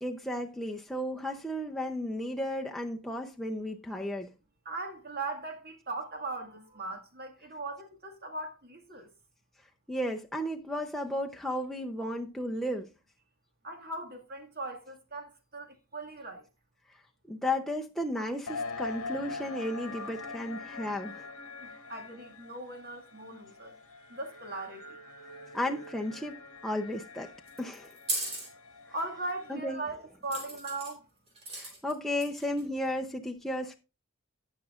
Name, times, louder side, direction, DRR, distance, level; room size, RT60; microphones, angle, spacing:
voice 1, 0.0-4.3 9.9-12.9 17.3-21.3 25.5-26.4 26.6-27.3 27.6-27.9 29.5-29.8 31.6-33.7, left 1 dB, ahead, 0.6 m, -34 dB
voice 2, 4.7-9.1 13.6-15.7 15.9-16.4 21.6-23.8 24.1-24.8 28.9-31.0, right 2 dB, 45° right, 1.9 m, -39 dB
sound 1, 18.5-29.9, left 3 dB, 75° left, 0.9 m, -43 dB
sound 2, 27.5-28.5 30.3-30.9 31.4-31.9 32.2-32.6, right 2 dB, 30° right, 3.8 m, -36 dB
17.0 x 6.3 x 2.5 m
head